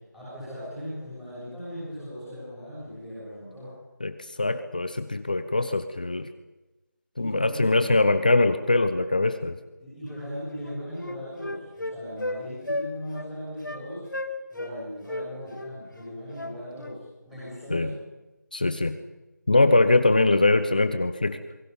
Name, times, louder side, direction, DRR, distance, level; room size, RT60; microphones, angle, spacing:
voice 1, 0.1-3.8 7.2-7.6 9.8-14.1 14.5-18.0 19.5-20.0, equal, ahead, -11 dB, 6.7 m, -38 dB
voice 2, 4.0-6.3 7.2-9.6 17.7-17.9 18.5-19.0 19.5-21.4, left 2 dB, 25° left, 10 dB, 0.9 m, -22 dB
Wind instrument woodwind instrument, 10.2-10.3 10.6-12.4 12.7-12.9 13.1-13.3 13.6-13.8 14.1-14.8 15.1-17.0, left 1 dB, 90° left, 5.0 m, -34 dB
28.0 x 22.0 x 5.6 m, 1.1 s
figure-of-eight pair, 175°, 10 cm